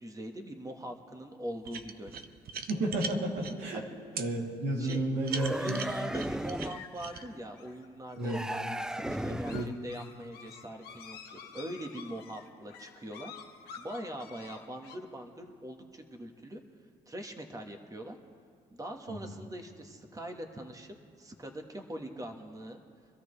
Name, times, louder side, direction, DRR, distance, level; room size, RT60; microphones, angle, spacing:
voice 1, 0.0-2.2 3.7-3.9 4.8-5.0 5.5-13.3 13.8-16.6 17.1-18.2 18.7-22.8, right 1 dB, 20° right, 4 dB, 1.5 m, -42 dB
sound 1, 1.6-3.5 4.2-4.3 4.8-7.2, right 6 dB, 70° right, 0.8 m, -40 dB
voice 2, 2.7-3.8 4.1-5.8 8.2-8.4 9.0-9.7 19.1-19.3, right 1 dB, 90° right, -2 dB, 3.0 m, -32 dB
sound 2, 5.3-6.9 8.2-9.9, right 1 dB, 5° right, 0.3 m, -36 dB
sound 3, 6.6-15.0, left 7 dB, 90° left, 1.3 m, -50 dB
24.5 x 13.5 x 3.3 m, 2.4 s
cardioid pair, 80°, 16 cm